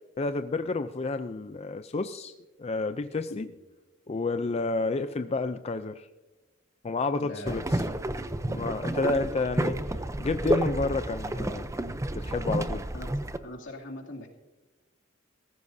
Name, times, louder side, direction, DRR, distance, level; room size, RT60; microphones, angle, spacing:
voice 1, 0.2-2.3 2.6-3.5 4.1-6.1 6.8-7.8 8.6-9.8 10.2-11.7 12.1-12.8, left 3 dB, 35° left, 9 dB, 0.4 m, -30 dB
voice 2, 7.2-8.0 8.4-8.7 12.9-13.1 13.4-14.3, left 1 dB, 75° left, -1 dB, 2.6 m, -41 dB
sound 1, 7.4-13.4, right 1 dB, 15° right, 0.6 m, -30 dB
18.5 x 15.0 x 2.7 m, 1.1 s
head